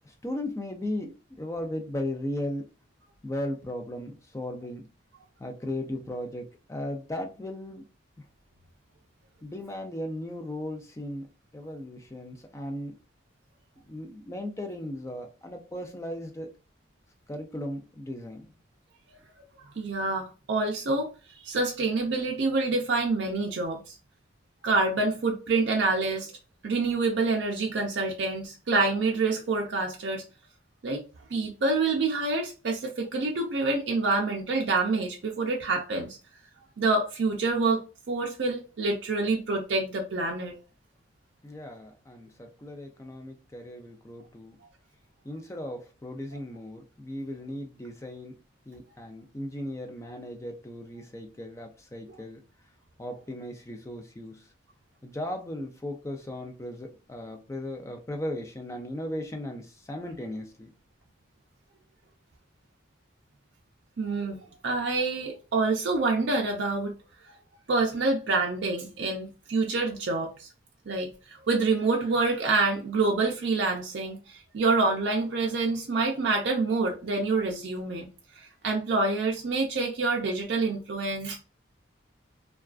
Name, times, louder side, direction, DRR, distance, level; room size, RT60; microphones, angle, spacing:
voice 1, 0.0-1.1 1.4-2.6 3.2-4.8 5.4-7.8 9.4-11.3 11.5-12.9 13.9-16.5 17.3-18.5 41.4-44.6 45.2-48.3 48.7-52.4 53.0-54.4 55.0-60.7, left 1 dB, 15° left, 0.3 m, -36 dB
voice 2, 19.8-24.0 24.6-26.3 26.6-30.2 30.8-31.0 31.3-36.2 36.8-40.5 64.0-66.9 67.7-70.5 70.9-78.1 78.4-81.4, right 3 dB, 60° right, 0.4 m, -27 dB
2.3 x 2.2 x 2.3 m
head